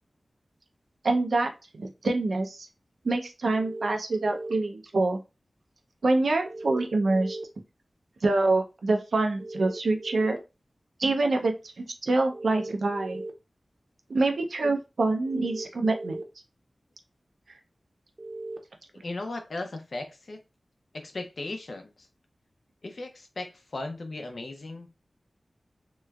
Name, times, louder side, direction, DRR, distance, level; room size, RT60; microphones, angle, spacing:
voice 1, 1.0-2.7 3.0-5.2 6.0-7.4 8.2-10.4 11.0-13.2 14.1-16.2, right 2 dB, 90° right, 0.6 m, -26 dB
sound 1, 3.5-4.5 6.5-7.4 9.4-10.4 12.3-13.3 15.3-16.2 18.2-18.6, right 2 dB, 30° right, 0.7 m, -37 dB
voice 2, 19.0-20.4 20.9-21.9 22.8-24.9, left 2 dB, 70° left, 0.6 m, -37 dB
3.2 x 3.0 x 2.3 m
wide cardioid pair, 75°, 0 cm